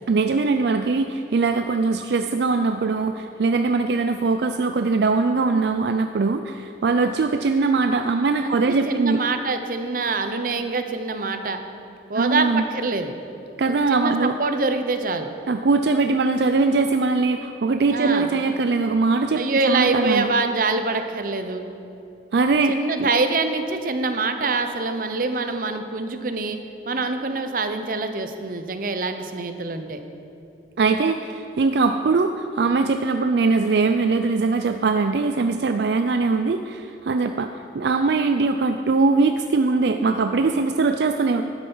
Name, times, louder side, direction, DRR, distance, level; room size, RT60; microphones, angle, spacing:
voice 1, 0.1-9.2 12.1-12.7 13.6-14.4 15.5-20.3 22.3-23.1 30.8-41.4, right 4 dB, 70° right, 7 dB, 0.4 m, -21 dB
voice 2, 8.4-11.6 12.1-13.1 13.7-15.3 17.9-18.3 19.4-21.6 22.7-26.6 26.9-30.0, right 3 dB, 50° right, 7 dB, 0.8 m, -25 dB
12.0 x 9.0 x 5.5 m, 2.7 s
head